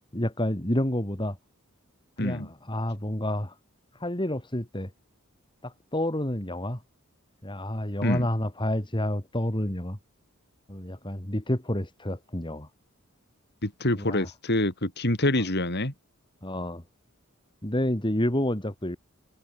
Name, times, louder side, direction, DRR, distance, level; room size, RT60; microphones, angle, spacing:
voice 1, 0.1-1.4 2.2-3.5 4.0-4.9 5.6-6.8 7.4-10.0 10.7-12.7 14.0-14.3 16.4-16.8 17.6-19.0, left 1 dB, 25° left, 3.3 m, -29 dB
voice 2, 2.2-2.5 8.0-8.3 13.6-15.9, left 1 dB, 50° left, 4.8 m, -26 dB
head